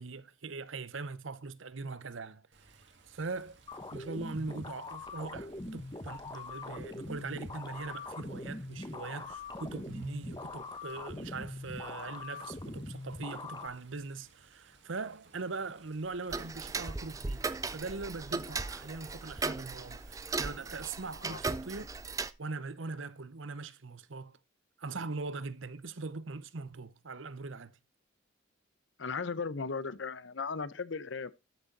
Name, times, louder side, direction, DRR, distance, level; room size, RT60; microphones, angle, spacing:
voice 1, 0.0-3.6 3.9-21.9 22.4-24.4 24.8-27.8, right 3 dB, 80° right, 0.8 m, -41 dB
Water, 2.5-21.1, right 3 dB, 65° right, 2.2 m, -61 dB
sound 1, 3.7-13.7, left 2 dB, 20° left, 0.8 m, -42 dB
Tick-tock, 16.3-22.3, right 3 dB, 15° right, 0.4 m, -37 dB
voice 2, 29.0-31.3, left 5 dB, 70° left, 0.7 m, -36 dB
13.0 x 6.5 x 4.0 m
head